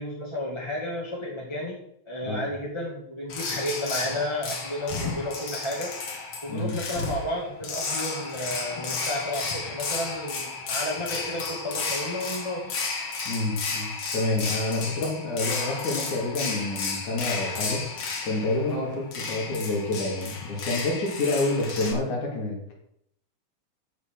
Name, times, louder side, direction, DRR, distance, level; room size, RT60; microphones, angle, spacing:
voice 1, 0.0-5.9 6.4-12.7 18.7-19.0, left 1 dB, 10° left, -4 dB, 1.7 m, -32 dB
sound 1, 3.3-21.9, left 4 dB, 55° left, 2.8 m, -33 dB
voice 2, 13.3-17.8 18.2-22.7, left 2 dB, 85° left, -2 dB, 4.6 m, -28 dB
14.0 x 5.8 x 6.4 m, 0.73 s
omnidirectional pair, 3.3 m